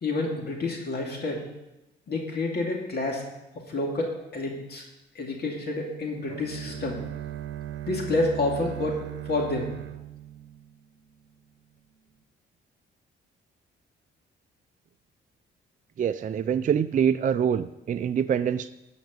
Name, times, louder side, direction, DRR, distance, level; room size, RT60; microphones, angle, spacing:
voice 1, 0.0-1.4 2.1-3.2 3.7-4.8 5.1-7.0 7.9-9.0 9.3-9.7, left 2 dB, 55° left, 0 dB, 2.4 m, -29 dB
Bowed string instrument, 6.3-11.2, right 12 dB, 65° right, 0.9 m, -37 dB
voice 2, 16.0-18.7, right 8 dB, 40° right, 9 dB, 0.4 m, -25 dB
12.0 x 5.2 x 8.0 m, 0.96 s
cardioid pair, 90°, 20 cm